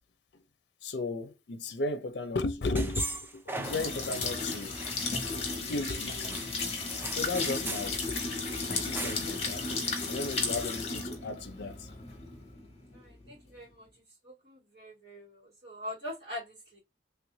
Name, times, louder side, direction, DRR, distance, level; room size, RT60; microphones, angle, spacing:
voice 1, 0.8-4.8 5.6-6.5 7.1-8.0 8.8-9.7 10.1-11.9, left 2 dB, 70° left, 0.5 m, -35 dB
sound 1, 2.8-4.3 4.6-5.5 6.1-7.9 8.2-8.3 8.6-9.4, right 2 dB, 10° right, 0.4 m, -39 dB
sound 2, 3.6-13.3, left 3 dB, 35° left, 1.0 m, -34 dB
voice 2, 12.9-13.9 14.2-16.8, left 1 dB, 65° right, 2.1 m, -43 dB
3.3 x 2.5 x 3.1 m
head